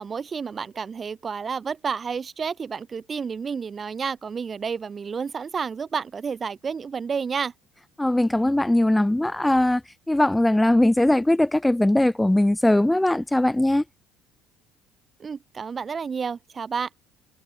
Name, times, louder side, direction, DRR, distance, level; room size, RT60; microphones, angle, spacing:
voice 1, 0.0-7.5 15.2-16.9, right 6 dB, 25° right, 2.4 m, -30 dB
voice 2, 8.0-9.8 10.1-13.8, left 1 dB, 5° left, 1.7 m, -20 dB
cardioid pair, 125°, 0 cm